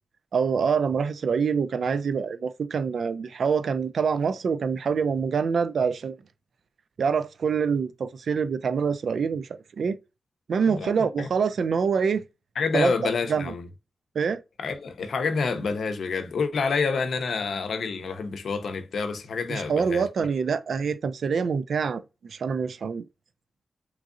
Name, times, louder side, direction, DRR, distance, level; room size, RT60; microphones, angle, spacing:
voice 1, 0.3-6.2 7.0-10.0 10.5-12.2 12.7-12.9 13.3-13.5 14.2-14.4 19.5-23.0, right 6 dB, 75° right, 0.3 m, -25 dB
voice 2, 10.7-11.3 12.6-13.7 14.6-20.1, left 5 dB, 85° left, 0.6 m, -28 dB
3.6 x 3.0 x 2.4 m
wide cardioid pair, 145°, 0 cm